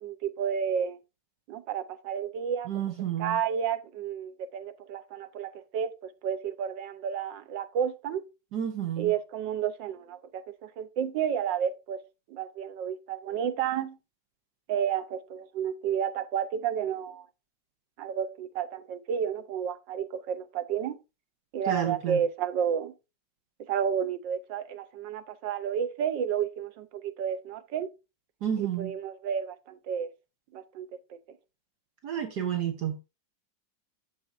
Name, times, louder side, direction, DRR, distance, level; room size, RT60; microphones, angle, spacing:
voice 1, 0.0-1.0 1.5-2.7 3.2-5.9 6.2-8.2 9.0-12.0 12.3-14.0 14.7-17.3 18.0-21.0 21.5-22.9 23.7-27.9 28.6-30.1 30.5-30.9, right 8 dB, 80° right, 1.5 m, -31 dB
voice 2, 2.6-3.4 8.5-9.1 21.6-22.2 28.4-29.0 32.0-33.0, right 9 dB, 65° right, 1.5 m, -31 dB
8.0 x 6.9 x 2.6 m
omnidirectional pair, 2.0 m